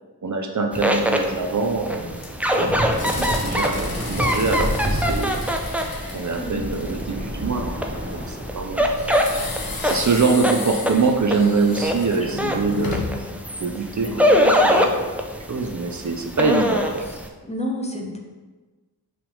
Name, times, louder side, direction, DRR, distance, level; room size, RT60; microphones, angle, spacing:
voice 1, 0.2-2.0 2.5-5.3 6.1-7.8 8.1-9.2 9.8-13.0 13.6-15.1 15.5-17.1, right 4 dB, 50° right, 4 dB, 0.6 m, -24 dB
sound 1, 0.7-17.3, equal, 5° right, 0.5 m, -24 dB
sound 2, 1.9-7.3 9.0-13.3, left 3 dB, 65° left, 1.0 m, -34 dB
Waves surf, 2.6-10.2, equal, 30° right, 1.1 m, -30 dB
voice 2, 12.1-13.3 14.0-14.8 16.4-16.7 17.4-18.2, left 1 dB, 15° left, 1 dB, 0.9 m, -31 dB
5.9 x 3.4 x 5.4 m, 1.3 s
wide cardioid pair, 80°, 38 cm